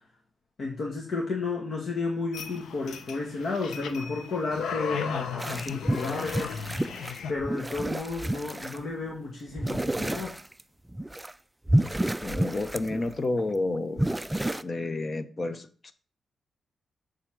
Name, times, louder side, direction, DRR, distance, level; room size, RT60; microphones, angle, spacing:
voice 1, 0.6-6.5 7.3-10.3, left 3 dB, 55° left, 1.5 m, -32 dB
sound 1, 2.3-7.3, left 6 dB, 90° left, 0.8 m, -36 dB
sound 2, 5.4-8.8 9.6-10.6 10.9-11.3 11.7-13.4 13.7-14.6, right 1 dB, 10° right, 0.3 m, -30 dB
voice 2, 12.2-14.1 14.6-15.9, left 2 dB, 30° left, 0.8 m, -30 dB
8.1 x 3.8 x 6.2 m
wide cardioid pair, 130°, 0 cm